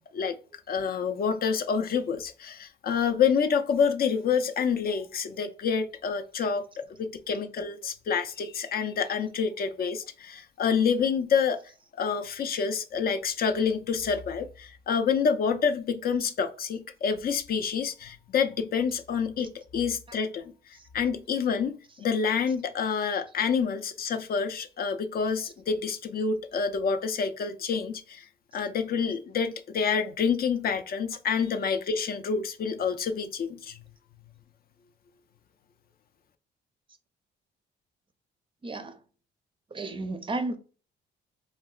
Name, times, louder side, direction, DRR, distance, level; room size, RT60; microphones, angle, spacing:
voice 1, 0.7-11.6 12.0-28.3 28.5-33.8, left 6 dB, 50° left, 0.4 m, -28 dB
voice 2, 38.6-39.0 39.7-40.6, right 2 dB, 25° right, 0.4 m, -33 dB
3.8 x 2.1 x 2.3 m
cardioid pair, 90°, 20 cm